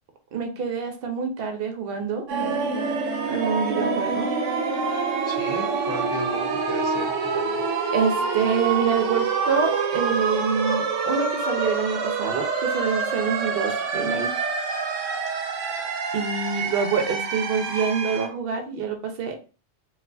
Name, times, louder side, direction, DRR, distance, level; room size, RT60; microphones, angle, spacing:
voice 1, 0.3-2.3 3.3-4.3 7.9-14.3 16.1-19.4, right 6 dB, 55° right, 5 dB, 0.8 m, -26 dB
sound 1, 2.3-18.3, right 4 dB, 90° right, 1.1 m, -26 dB
voice 2, 5.3-7.6, left 1 dB, 55° left, 3 dB, 1.1 m, -36 dB
4.5 x 2.4 x 2.5 m, 0.35 s
omnidirectional pair, 1.2 m